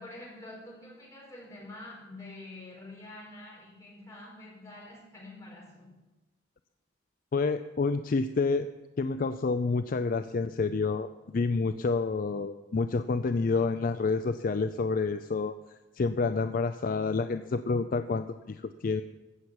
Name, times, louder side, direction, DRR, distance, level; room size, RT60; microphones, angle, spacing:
voice 1, 0.0-5.9, left 2 dB, 15° left, -5 dB, 4.5 m, -47 dB
voice 2, 7.3-8.7 9.0-15.5 15.9-19.0, left 4 dB, 45° left, 10 dB, 0.4 m, -28 dB
14.5 x 6.0 x 8.0 m, 1.1 s
head